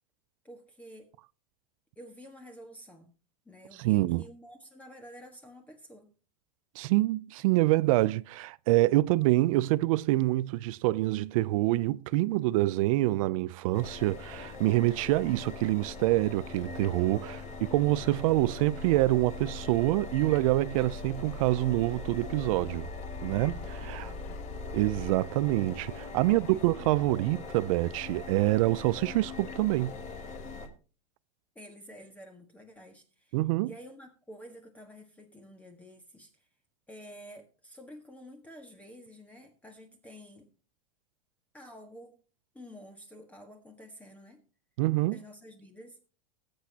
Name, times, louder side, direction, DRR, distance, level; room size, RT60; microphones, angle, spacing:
voice 1, 0.4-1.2 2.0-3.1 3.4-6.1 23.2-24.3 26.2-26.9 31.5-33.4 33.6-36.5 36.9-40.5 41.5-42.2 42.5-44.4 45.1-46.0, equal, 5° left, 1.5 m, -50 dB
voice 2, 3.8-4.2 6.8-22.9 23.2-24.1 24.7-30.0 33.3-33.7 44.8-45.2, right 18 dB, 60° right, 0.5 m, -26 dB
sound 1, 13.7-30.7, left 3 dB, 35° left, 2.3 m, -41 dB
20.0 x 8.1 x 2.8 m
supercardioid pair, 135°, 19 cm